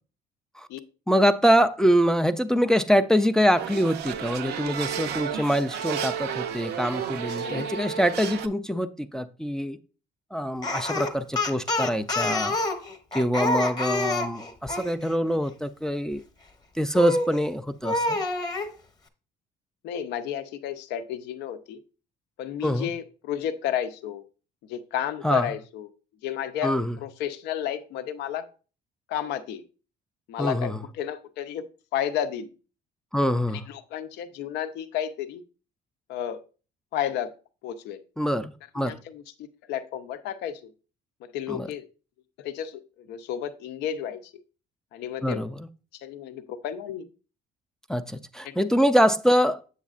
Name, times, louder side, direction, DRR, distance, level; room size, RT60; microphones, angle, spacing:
voice 1, 1.1-9.8 10.3-12.6 13.1-16.2 16.8-18.2 22.6-22.9 25.2-25.5 26.6-27.0 30.4-30.8 33.1-33.7 38.2-39.0 41.5-41.7 45.2-45.7 47.9-49.6, equal, 5° left, 0.3 m, -24 dB
sound 1, 3.5-8.5, right 8 dB, 75° right, 0.6 m, -32 dB
Speech, 10.6-14.9 16.9-17.4 17.8-18.7, left 2 dB, 25° left, 0.9 m, -27 dB
voice 2, 19.8-21.8 22.4-24.2 24.7-25.9 26.2-28.4 29.1-29.6 30.3-31.6 31.9-32.5 33.5-35.4 36.1-36.4 36.9-37.3 37.6-38.0 38.8-40.7 41.2-41.8 42.4-44.2 44.9-45.4 45.9-47.1 48.4-48.5, left 10 dB, 85° left, 0.6 m, -32 dB
8.2 x 6.3 x 2.4 m
cardioid pair, 110°, 17 cm